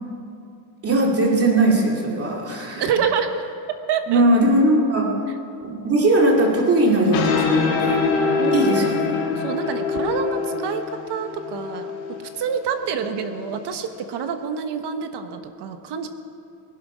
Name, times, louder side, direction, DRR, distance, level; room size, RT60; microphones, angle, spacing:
voice 1, 0.8-2.8 4.1-5.1 5.6-8.0 8.5-9.0, right 1 dB, 30° right, -1 dB, 2.6 m, -19 dB
voice 2, 2.7-3.3 3.9-4.4 8.4-11.9 12.3-16.1, right 7 dB, 60° right, 8 dB, 1.2 m, -27 dB
sound 1, 6.9-14.0, left 4 dB, 75° left, 3.0 m, -25 dB
20.5 x 11.5 x 5.0 m, 2.5 s
cardioid pair, 155°, 46 cm